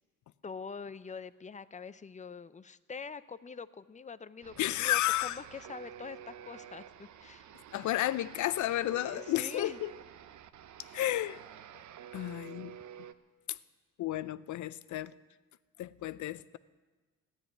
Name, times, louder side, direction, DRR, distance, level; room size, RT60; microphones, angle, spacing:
voice 1, 0.4-7.5 9.1-9.8 10.8-11.0, left 5 dB, 25° left, 15 dB, 0.6 m, -45 dB
sound 1, 4.4-13.1, right 9 dB, 70° right, 0.8 m, -50 dB
voice 2, 4.6-5.4 7.7-9.9 10.9-11.4 12.1-12.7 13.5-13.6 14.0-15.1 15.8-16.6, left 14 dB, 75° left, 17 dB, 0.6 m, -32 dB
14.0 x 9.8 x 9.9 m, 1.3 s
cardioid pair, 90°, 30 cm